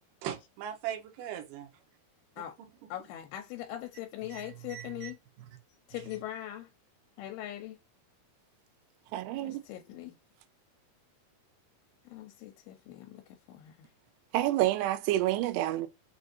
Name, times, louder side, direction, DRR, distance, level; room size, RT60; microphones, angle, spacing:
voice 1, 0.2-1.7 4.3-5.1 15.4-15.5, right 10 dB, 70° right, 2.3 m, -39 dB
voice 2, 2.9-5.2 5.9-6.7 7.2-7.8 9.3-10.2 12.1-13.2 13.5-13.9, left 13 dB, 90° left, 2.6 m, -41 dB
voice 3, 9.1-9.6 14.3-15.9, right 14 dB, 90° right, 2.6 m, -28 dB
6.4 x 2.6 x 2.6 m
omnidirectional pair, 4.5 m